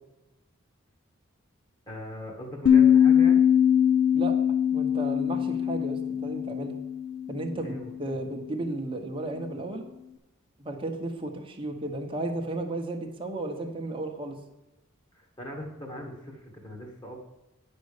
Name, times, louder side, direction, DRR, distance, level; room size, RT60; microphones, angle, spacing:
voice 1, 1.9-3.4 7.6-8.2 15.1-17.2, equal, 20° left, 0 dB, 1.4 m, -40 dB
sound 1, 2.7-7.8, left 9 dB, 50° left, 0.8 m, -22 dB
voice 2, 4.7-6.8 7.3-9.8 10.6-14.4, right 2 dB, 25° right, 2 dB, 1.0 m, -34 dB
9.4 x 5.3 x 6.6 m, 0.97 s
head